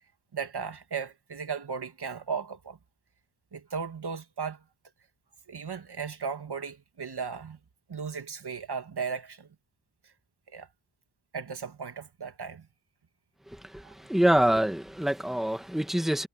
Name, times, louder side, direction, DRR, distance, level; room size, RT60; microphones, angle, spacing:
voice 1, 0.3-2.8 3.5-4.6 5.5-7.6 7.9-9.5 10.0-10.1 10.5-10.7 11.3-12.7 13.8-13.9, right 6 dB, 90° right, 2.1 m, -36 dB
voice 2, 13.7-16.3, right 1 dB, ahead, 1.5 m, -25 dB
wide cardioid pair, 95°, 38 cm